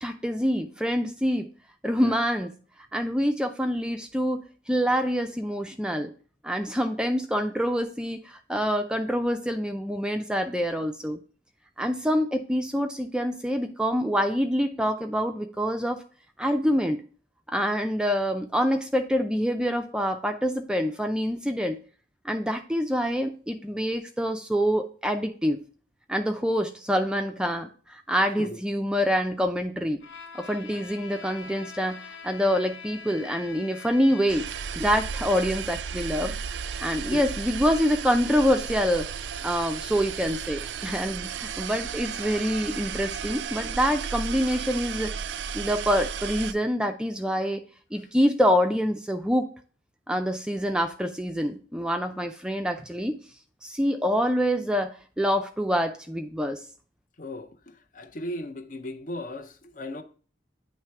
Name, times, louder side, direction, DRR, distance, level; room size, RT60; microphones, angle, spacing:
voice 1, 0.0-1.5 1.8-2.5 2.9-6.1 6.4-11.2 11.8-16.0 16.4-17.0 17.5-21.8 22.2-25.6 26.1-30.0 30.3-34.4 34.8-36.4 36.8-39.1 39.4-45.1 45.5-47.6 47.9-49.5 50.1-53.2 53.6-56.6, equal, 5° right, 0.4 m, -26 dB
Bowed string instrument, 30.0-34.7, left 5 dB, 90° left, 1.0 m, -44 dB
sound 1, 34.3-46.5, right 7 dB, 75° right, 0.4 m, -34 dB
voice 2, 57.2-57.5 57.9-60.0, left 1 dB, 45° left, 0.6 m, -36 dB
9.0 x 3.2 x 4.6 m
head